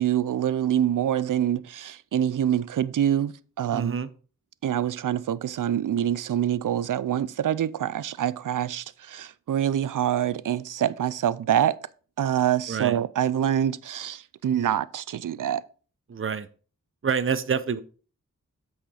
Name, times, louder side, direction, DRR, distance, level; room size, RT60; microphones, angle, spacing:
voice 1, 0.0-4.0 4.6-11.8 12.2-15.6, right 10 dB, 75° right, 0.5 m, -25 dB
voice 2, 3.7-4.1 12.7-13.0 16.1-16.5 17.0-17.8, right 6 dB, 40° right, 0.7 m, -27 dB
8.2 x 6.4 x 4.8 m
cardioid pair, 50°, 32 cm